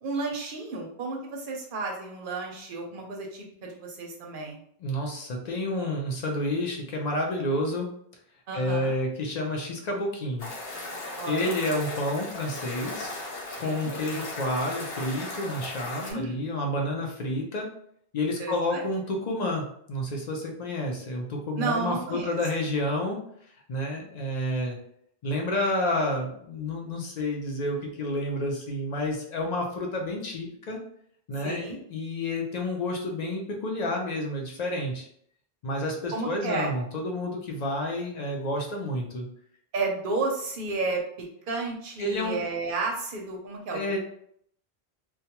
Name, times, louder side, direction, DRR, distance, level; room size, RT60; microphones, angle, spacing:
voice 1, 0.0-4.6 8.5-8.9 11.2-11.5 13.6-13.9 16.0-16.5 18.4-18.8 21.6-22.4 31.4-31.8 36.1-36.7 39.7-41.0 41.5-44.0, right 3 dB, 65° right, 0 dB, 0.7 m, -32 dB
voice 2, 4.8-7.9 8.5-10.5 11.2-13.1 13.6-17.7 18.1-23.2 23.7-24.8 25.2-30.8 31.3-31.6 31.9-35.1 35.6-39.3 42.0-42.4 43.7-44.0, left 1 dB, 50° left, 0 dB, 0.6 m, -30 dB
sound 1, 10.4-16.1, left 2 dB, 75° left, 0.9 m, -37 dB
2.3 x 2.2 x 2.8 m, 0.67 s
omnidirectional pair, 1.0 m